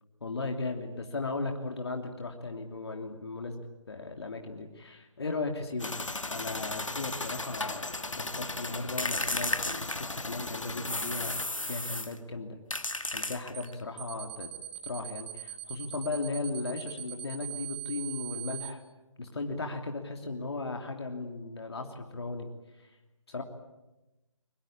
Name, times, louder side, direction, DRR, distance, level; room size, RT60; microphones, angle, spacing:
voice 1, 0.2-3.6 3.9-5.9 6.3-11.4 11.6-12.6 13.1-14.5 14.8-18.8 19.2-22.5 22.8-22.9 23.3-23.4, left 3 dB, 55° left, 4 dB, 2.9 m, -36 dB
sound 1, 5.8-11.5, left 2 dB, 75° left, 2.3 m, -37 dB
sound 2, 9.0-10.4 10.8-12.2 12.7-13.8, left 2 dB, 90° left, 2.0 m, -33 dB
sound 3, 13.5-13.7 14.0-18.7, right 14 dB, 20° right, 1.7 m, -40 dB
23.5 x 23.0 x 8.7 m, 1.0 s
figure-of-eight pair, 155°, 16 cm